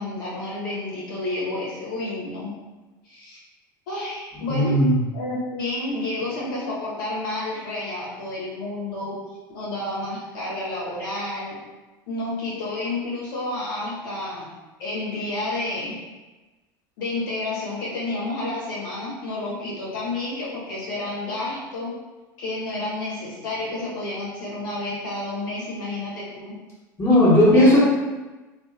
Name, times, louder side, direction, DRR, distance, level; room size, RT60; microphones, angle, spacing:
voice 1, 0.0-2.5 3.0-3.4 3.9-4.7 5.1-9.1 9.5-11.6 12.1-14.5 14.8-16.0 17.0-21.9 22.4-26.5 27.5-27.8, left 2 dB, 75° left, -7 dB, 1.0 m, -30 dB
voice 2, 4.5-5.0 27.0-27.8, left 1 dB, 20° left, -8 dB, 1.2 m, -15 dB
2.7 x 2.5 x 2.4 m, 1.2 s
hypercardioid pair, 85°, 11 cm